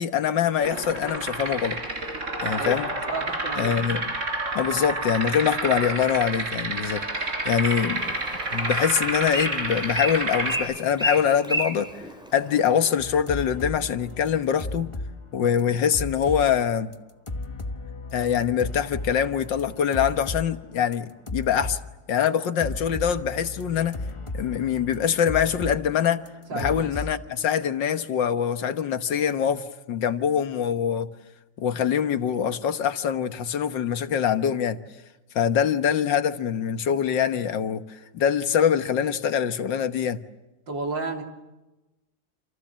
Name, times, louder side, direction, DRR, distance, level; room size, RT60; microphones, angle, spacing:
voice 1, 0.0-1.8 2.4-2.9 3.6-4.1 4.6-7.0 7.5-8.1 8.5-12.0 12.3-14.9 15.3-16.9 18.1-21.8 22.1-24.0 24.3-26.2 26.5-31.1 31.6-34.8 35.4-40.2, left 8 dB, 75° left, 1.9 m, -24 dB
sound 1, 0.6-10.6, right 2 dB, 40° right, 5.0 m, -29 dB
voice 2, 3.1-3.7 26.5-27.0 40.7-41.2, right 3 dB, 80° right, 4.2 m, -32 dB
Bird, 7.8-12.9, equal, ahead, 4.0 m, -32 dB
sound 2, 13.0-15.2 15.4-16.5 16.8-16.9 17.3-20.5 20.8-21.8 22.3-22.4 22.6-25.8 26.1-27.2, left 2 dB, 20° left, 0.9 m, -35 dB
28.5 x 28.0 x 7.5 m
omnidirectional pair, 2.0 m